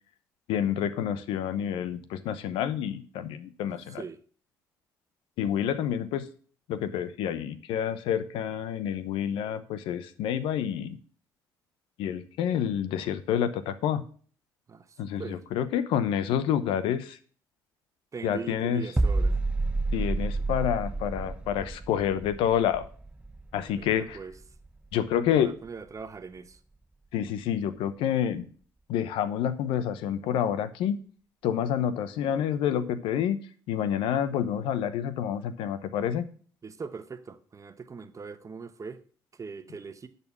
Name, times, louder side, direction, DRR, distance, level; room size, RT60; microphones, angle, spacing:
voice 1, 0.5-4.0 5.4-6.2 6.7-11.0 12.0-14.0 15.0-17.2 18.2-18.8 19.9-22.8 23.5-24.2 24.9-25.5 27.1-28.5 28.9-31.0 31.4-33.4 33.7-36.2, left 9 dB, 75° left, 0.9 m, -28 dB
voice 2, 3.9-4.2 14.7-14.9 15.2-15.4 18.1-19.4 23.7-24.4 25.3-26.6 36.6-39.0 39.4-40.1, right 5 dB, 35° right, 1.1 m, -40 dB
sound 1, 19.0-24.7 24.9-25.2, right 2 dB, 15° right, 0.4 m, -30 dB
10.5 x 4.2 x 7.3 m
hypercardioid pair, 55°, 9 cm